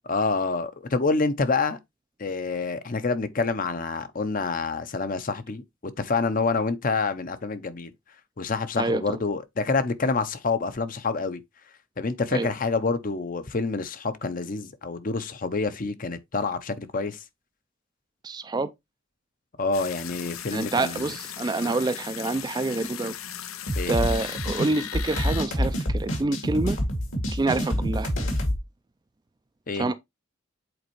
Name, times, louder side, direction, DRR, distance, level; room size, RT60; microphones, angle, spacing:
voice 1, 0.1-1.8 2.2-5.6 6.0-7.9 8.4-11.4 12.0-17.2 19.6-21.1 23.7-24.0 29.7-29.9, left 4 dB, 40° left, 0.7 m, -27 dB
voice 2, 8.8-9.2 12.3-12.5 18.2-18.7 20.5-23.1 23.9-26.8 27.3-28.1 29.7-29.9, right 2 dB, 20° right, 0.4 m, -27 dB
sound 1, 19.7-25.4, left 10 dB, 90° left, 0.6 m, -37 dB
sound 2, 23.7-28.6, equal, 70° left, 2.2 m, -27 dB
7.9 x 4.2 x 3.0 m
head